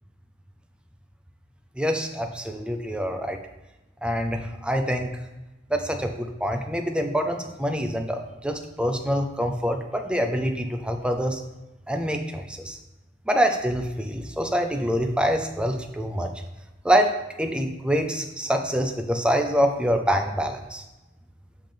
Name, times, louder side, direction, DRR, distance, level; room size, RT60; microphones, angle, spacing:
voice 1, 1.8-3.4 4.0-5.1 5.7-11.4 11.9-12.8 13.3-16.3 16.8-17.1 17.4-20.8, equal, 5° right, 5 dB, 0.5 m, -25 dB
7.8 x 3.5 x 5.1 m, 1.0 s
head